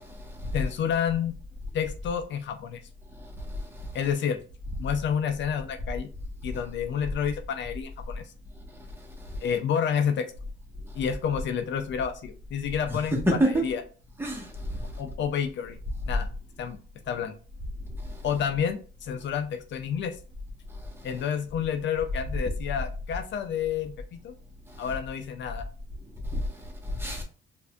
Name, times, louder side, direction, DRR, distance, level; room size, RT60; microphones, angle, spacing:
voice 1, 0.5-1.3 1.7-2.8 3.9-4.4 4.8-6.1 6.4-8.2 9.4-10.3 10.9-13.8 15.0-15.8 16.1-16.3 16.6-16.8 17.1-17.3 18.2-20.2 21.0-24.3 24.8-25.7, left 8 dB, 65° left, 0.5 m, -29 dB
voice 2, 12.9-13.7 14.2-14.7 26.3-26.4 27.0-27.2, right 1 dB, 10° right, 1.3 m, -26 dB
4.7 x 2.6 x 2.3 m
cardioid pair, 90°, 20 cm